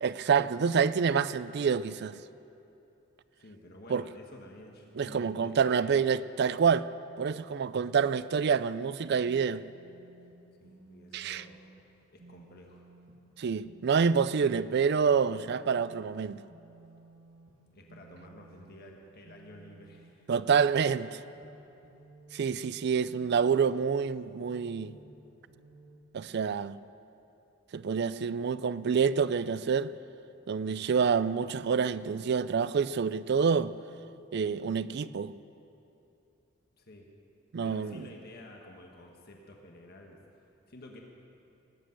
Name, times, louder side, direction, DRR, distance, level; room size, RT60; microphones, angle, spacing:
voice 1, 0.0-2.2 3.9-4.0 5.0-6.9 7.2-9.6 11.1-11.4 13.4-16.4 20.3-21.2 22.3-24.9 26.1-26.8 27.7-29.9 30.5-33.7 34.3-35.3 37.5-38.1, right 6 dB, 55° right, 16 dB, 0.4 m, -27 dB
voice 2, 3.4-6.0 10.6-11.6 12.1-12.9 17.7-20.5 21.6-21.7 30.6-30.9 36.8-37.1 37.6-41.0, left 1 dB, 50° left, 1 dB, 1.3 m, -51 dB
sound 1, 9.2-26.0, right 3 dB, 70° right, 1.4 m, -56 dB
19.0 x 8.3 x 7.8 m, 2.9 s
head